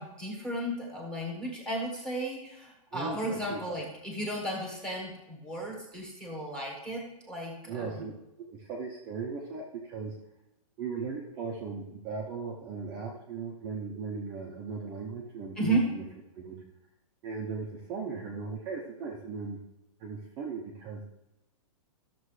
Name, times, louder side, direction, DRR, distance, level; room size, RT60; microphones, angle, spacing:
voice 1, 0.0-7.9 15.6-15.9, right 1 dB, 5° left, -1 dB, 1.4 m, -34 dB
voice 2, 2.9-3.8 7.7-8.1 8.5-10.1 10.8-16.0 16.3-16.6 17.2-19.6 20.0-21.0, right 5 dB, 20° right, -4 dB, 0.8 m, -37 dB
13.0 x 6.8 x 3.2 m, 0.91 s
hypercardioid pair, 170°, 18 cm